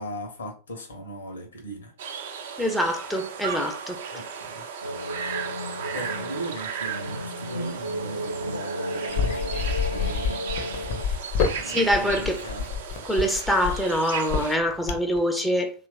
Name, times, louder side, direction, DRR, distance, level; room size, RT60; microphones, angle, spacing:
voice 1, 0.0-1.9 4.1-4.7 5.9-10.8 11.6-12.8, right 1 dB, 70° left, 0.9 m, -39 dB
sound 1, 2.0-14.6, right 7 dB, 60° right, 0.5 m, -36 dB
voice 2, 2.6-4.0 11.7-12.4 13.0-15.7, equal, 5° left, 0.4 m, -24 dB
sound 2, 4.8-11.0, equal, 85° left, 0.3 m, -33 dB
sound 3, 9.1-15.2, left 6 dB, 45° left, 0.6 m, -28 dB
3.0 x 2.4 x 2.3 m
figure-of-eight pair, 90°, 0 cm